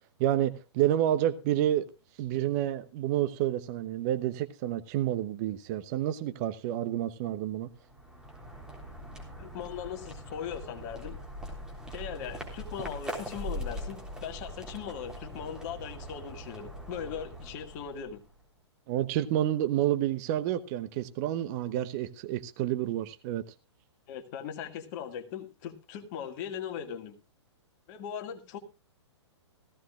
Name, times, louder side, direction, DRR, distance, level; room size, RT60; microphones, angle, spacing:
voice 1, 0.2-1.9 2.2-7.7 18.9-23.4, right 12 dB, 35° right, 0.9 m, -29 dB
sound 1, 7.7-18.4, equal, 5° right, 3.4 m, -42 dB
voice 2, 9.4-11.2 11.9-18.2 24.1-27.2 27.9-28.6, left 8 dB, 40° left, 2.0 m, -39 dB
17.0 x 15.5 x 2.4 m
figure-of-eight pair, 120°, 15 cm